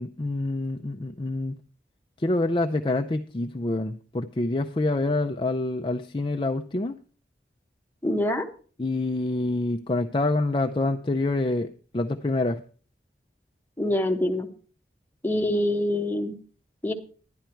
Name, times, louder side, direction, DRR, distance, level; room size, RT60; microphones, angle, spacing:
voice 1, 0.0-1.6 2.2-6.9 8.8-12.6, left 2 dB, 30° left, 0.5 m, -26 dB
voice 2, 8.0-8.5 13.8-14.5 15.2-16.4 16.8-16.9, left 1 dB, 10° left, 1.1 m, -25 dB
11.5 x 10.5 x 4.5 m
head